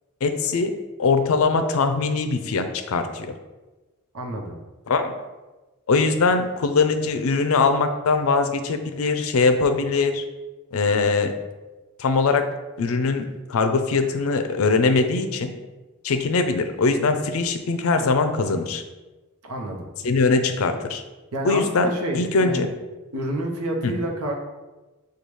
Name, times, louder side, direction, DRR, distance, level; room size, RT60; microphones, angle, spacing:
voice 1, 0.2-3.3 4.9-5.1 5.9-10.2 10.7-11.3 12.0-12.5 12.8-15.5 16.0-18.8 20.0-21.0 21.4-22.7 23.8-23.9, left 4 dB, 75° left, 8 dB, 0.4 m, -22 dB
voice 2, 4.1-4.6 19.4-19.9 21.3-22.7 23.1-24.3, right 1 dB, 90° right, 1 dB, 0.8 m, -28 dB
6.8 x 2.3 x 3.1 m, 1.2 s
head